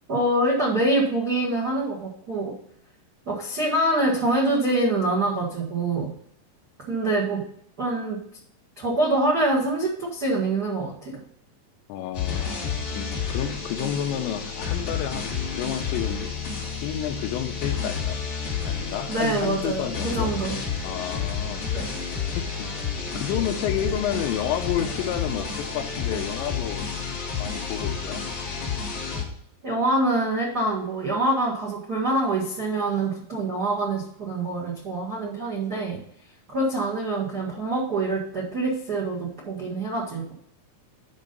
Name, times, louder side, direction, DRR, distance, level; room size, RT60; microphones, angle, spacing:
voice 1, 0.1-2.5 3.2-6.1 6.9-7.4 7.8-8.2 8.8-11.2 19.1-20.6 21.7-22.0 29.6-36.0 36.5-40.3, right 2 dB, 75° right, -3 dB, 0.9 m, -25 dB
voice 2, 11.9-16.3 16.8-18.2 18.6-20.3 20.8-21.9 22.3-26.9 27.4-28.2, left 9 dB, 85° left, 7 dB, 3.1 m, -31 dB
sound 1, 12.1-29.2, left 6 dB, 40° left, 2.9 m, -30 dB
9.8 x 5.6 x 5.3 m, 0.69 s
omnidirectional pair, 5.1 m